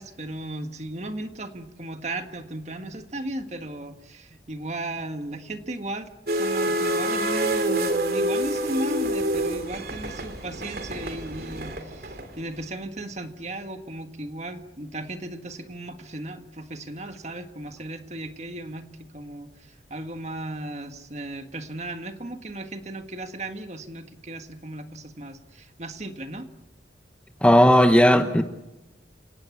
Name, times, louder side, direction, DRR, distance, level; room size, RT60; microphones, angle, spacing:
voice 1, 0.0-26.5, right 1 dB, 40° right, 7 dB, 1.7 m, -36 dB
sound 1, 6.3-12.6, right 1 dB, 55° right, 3.3 m, -27 dB
voice 2, 27.4-28.4, equal, 5° left, 7 dB, 1.1 m, -16 dB
29.0 x 18.0 x 8.6 m, 0.98 s
head